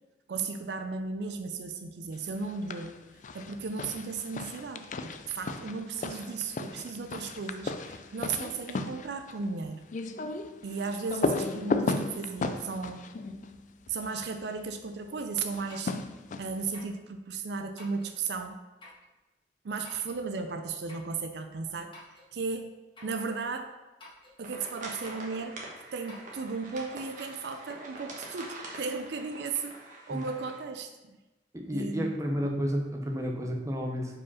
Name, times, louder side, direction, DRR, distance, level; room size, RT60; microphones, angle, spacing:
voice 1, 0.3-3.0 3.3-9.8 10.6-13.0 13.9-15.9 16.4-18.6 19.6-21.9 22.3-22.7 23.0-23.7 24.4-25.6 25.9-31.2 31.7-32.1, right 4 dB, 65° right, 7 dB, 0.5 m, -35 dB
sound 1, 2.4-2.9 3.2-14.2 15.5-16.7, left 3 dB, 45° left, 0.4 m, -35 dB
sound 2, 15.7-16.1 16.7-17.0 17.8-18.2 18.8-19.1 19.8-20.2 20.9-21.1 21.9-22.3 23.0-23.2 24.0-24.4 25.0-25.3 26.1-26.4, left 2 dB, 30° left, 1.7 m, -51 dB
sound 3, 24.4-30.6, right 2 dB, 45° right, 1.4 m, -45 dB
voice 2, 31.5-34.1, equal, 20° right, 1 dB, 0.9 m, -31 dB
4.9 x 4.8 x 5.6 m, 1.1 s
head